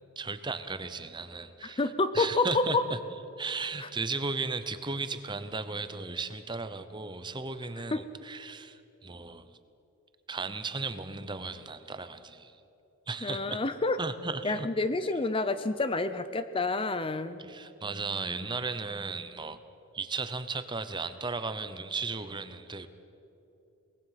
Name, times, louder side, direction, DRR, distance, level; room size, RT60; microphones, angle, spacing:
voice 1, 0.2-3.0 3.4-9.6 10.3-12.6 13.1-13.6 14.0-14.7 17.4-19.6 19.9-22.9, right 4 dB, 20° right, 11 dB, 0.8 m, -35 dB
voice 2, 1.8-2.8 3.8-3.9 7.9-8.0 13.2-14.0 14.4-17.4, left 3 dB, 25° left, 12 dB, 0.6 m, -28 dB
23.5 x 20.0 x 5.8 m, 3.0 s
head